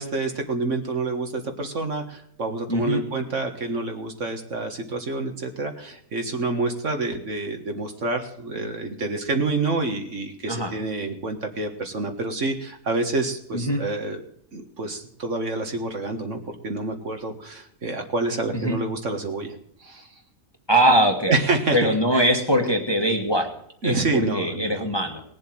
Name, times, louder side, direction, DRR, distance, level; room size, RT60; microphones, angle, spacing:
voice 1, 0.0-14.2 14.5-19.5 19.8-20.1 21.3-22.3 23.8-24.8, right 3 dB, 50° right, 5 dB, 2.0 m, -28 dB
voice 2, 2.7-3.0 10.5-10.7 13.5-13.8 18.5-18.8 20.7-21.3 21.7-23.5 23.8-25.2, equal, 15° left, 4 dB, 1.7 m, -22 dB
19.5 x 7.6 x 7.6 m, 0.70 s
omnidirectional pair, 1.6 m